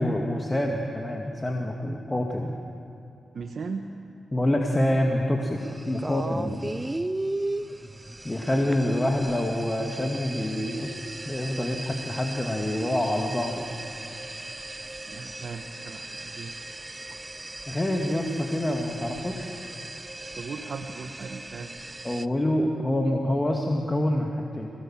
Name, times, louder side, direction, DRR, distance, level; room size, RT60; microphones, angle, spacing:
voice 1, 0.0-2.5 4.3-5.6 5.8-6.6 8.2-11.0 11.3-13.6 17.7-19.6 22.0-24.7, left 1 dB, 20° left, 0 dB, 2.3 m, -26 dB
voice 2, 3.3-3.9 15.1-16.5 20.4-21.7, right 5 dB, 60° right, 4 dB, 1.3 m, -37 dB
sound 1, 5.6-22.3, right 2 dB, 20° right, 0.7 m, -37 dB
27.5 x 18.5 x 7.5 m, 2.8 s
cardioid pair, 55°, 0 cm